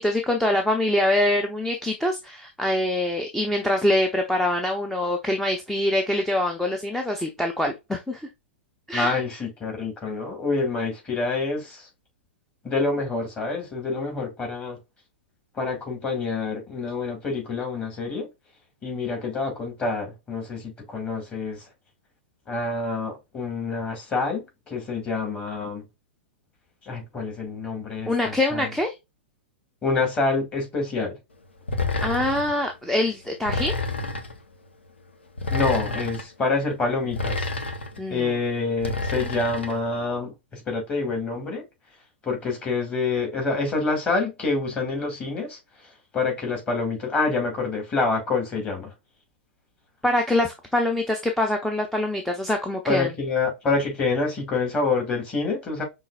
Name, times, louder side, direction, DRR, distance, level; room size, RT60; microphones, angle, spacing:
voice 1, 0.0-8.2 8.9-9.2 28.1-28.9 32.0-33.8 38.0-38.4 50.0-53.1, left 1 dB, 5° left, 0.6 m, -24 dB
voice 2, 8.9-11.9 12.6-14.8 15.6-18.3 18.8-21.6 22.5-25.8 26.8-28.6 29.8-31.2 35.5-37.5 38.1-41.6 42.2-45.6 46.1-48.9 52.9-55.8, left 3 dB, 20° left, 2.2 m, -27 dB
sound 1, 31.7-32.6 33.5-34.4 35.4-36.3 37.1-38.0 38.8-39.8, left 3 dB, 75° left, 0.9 m, -28 dB
5.5 x 3.2 x 2.4 m
figure-of-eight pair, 105°, 6 cm